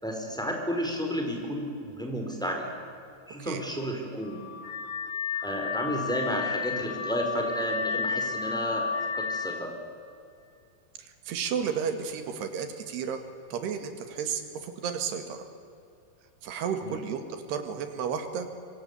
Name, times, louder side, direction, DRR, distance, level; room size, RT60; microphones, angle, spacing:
voice 1, 0.0-2.6 3.3-4.4 5.4-8.9 9.1-9.7 16.8-17.0, equal, ahead, 1 dB, 4.1 m, -32 dB
Car / Alarm, 4.2-9.7, left 5 dB, 60° left, 3.2 m, -32 dB
voice 2, 11.0-13.2 13.5-15.4 16.4-18.5, right 7 dB, 80° right, 7 dB, 4.1 m, -32 dB
25.0 x 24.5 x 8.4 m, 2.5 s
omnidirectional pair, 4.8 m